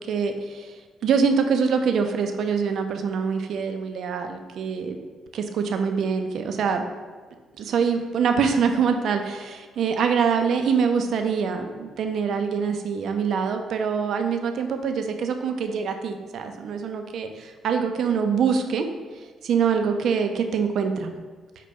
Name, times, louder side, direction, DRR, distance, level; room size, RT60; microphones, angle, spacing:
voice 1, 0.1-0.7 1.0-5.0 5.3-6.9 7.6-18.9 19.4-21.1, right 6 dB, 70° right, 6 dB, 0.4 m, -24 dB
5.1 x 2.2 x 4.0 m, 1.4 s
cardioid pair, 90°, 0 cm